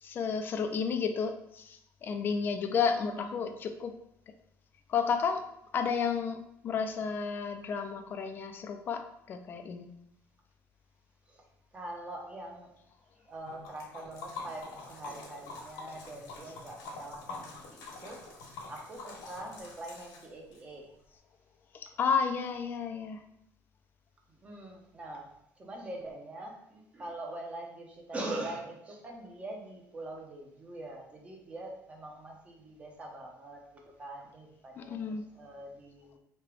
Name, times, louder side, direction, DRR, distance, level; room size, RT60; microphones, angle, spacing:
voice 1, 0.0-3.9 4.9-5.4 5.7-9.0 9.3-9.9 21.7-23.2 34.8-35.2, left 6 dB, 30° left, 7 dB, 0.4 m, -32 dB
voice 2, 2.8-3.4 11.3-11.4 11.7-12.7 13.3-18.2 18.7-20.8 24.4-25.3 25.6-33.6 34.0-36.2, right 1 dB, 20° right, 0 dB, 0.7 m, -43 dB
Liquid, 13.4-20.6, left 3 dB, 85° left, 1.2 m, -46 dB
3.2 x 2.9 x 4.7 m, 0.77 s
cardioid pair, 165°, 6 cm